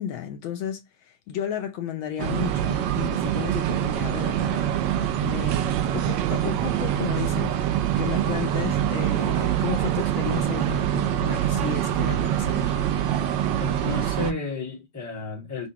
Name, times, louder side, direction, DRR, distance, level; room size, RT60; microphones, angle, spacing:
voice 1, 0.0-12.8, left 9 dB, 75° left, 1.4 m, -33 dB
sound 1, 2.2-14.3, right 11 dB, 75° right, 1.2 m, -25 dB
voice 2, 13.6-15.7, left 3 dB, 10° left, 1.0 m, -32 dB
6.2 x 2.2 x 2.8 m
omnidirectional pair, 2.3 m